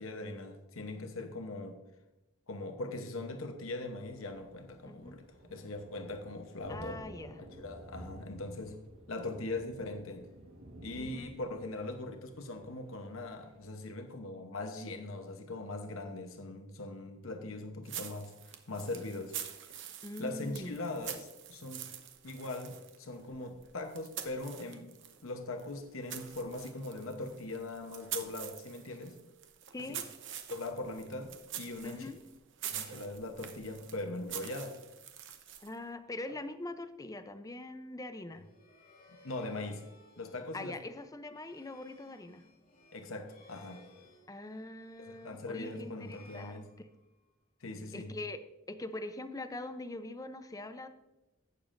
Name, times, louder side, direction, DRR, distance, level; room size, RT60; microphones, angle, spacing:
voice 1, 0.0-1.8 2.5-8.8 9.1-10.3 10.8-19.4 20.2-21.9 22.2-24.9 25.2-29.2 29.9-30.0 30.5-32.1 32.7-34.8 39.2-39.8 40.2-40.8 42.9-43.9 45.0-46.7 47.6-48.1, left 2 dB, 75° left, 5 dB, 1.0 m, -41 dB
Thunder, 3.6-13.6, right 1 dB, 80° right, 1.6 m, -53 dB
voice 2, 4.9-5.2 6.7-7.5 10.9-11.3 20.0-20.8 29.7-30.0 31.8-32.2 35.6-38.5 40.5-42.4 44.3-46.7 47.9-48.4 48.7-50.9, left 2 dB, 15° left, 10 dB, 0.6 m, -43 dB
sound 1, 17.8-25.2 25.6-35.8, right 9 dB, 60° right, 0.9 m, -45 dB
sound 2, 38.2-47.3, left 2 dB, 45° left, 1.6 m, -61 dB
16.0 x 6.9 x 2.6 m, 0.96 s
head